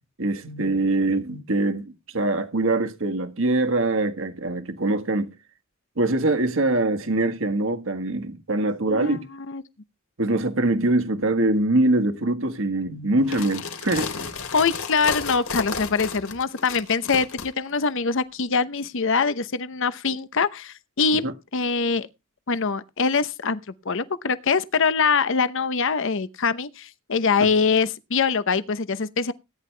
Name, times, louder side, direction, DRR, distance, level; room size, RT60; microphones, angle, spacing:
voice 1, 0.2-5.3 6.0-9.2 10.2-14.1 21.2-21.3, right 2 dB, 65° right, 1.6 m, -23 dB
voice 2, 8.9-9.6 14.5-22.1 22.5-29.3, left 5 dB, 65° left, 0.8 m, -24 dB
sound 1, 13.2-17.5, left 5 dB, 90° left, 3.6 m, -32 dB
18.0 x 10.5 x 3.3 m
head